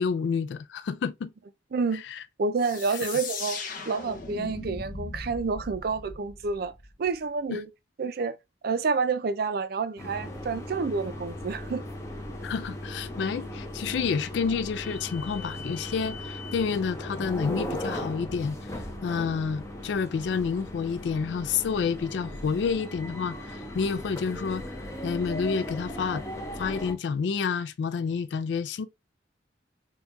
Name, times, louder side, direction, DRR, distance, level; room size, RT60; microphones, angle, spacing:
voice 1, 0.0-1.3 1.9-2.2 7.5-7.6 12.4-18.6 19.0-24.6 25.0-26.2 26.6-28.9, left 5 dB, 70° left, 0.3 m, -29 dB
voice 2, 1.7-2.0 2.4-6.7 7.0-7.7 8.0-8.4 8.6-11.8, right 4 dB, 55° right, 0.4 m, -29 dB
sound 1, 2.6-7.2, left 4 dB, 50° left, 0.7 m, -38 dB
sound 2, 10.0-26.9, left 1 dB, 15° left, 0.6 m, -37 dB
4.4 x 2.3 x 2.5 m
head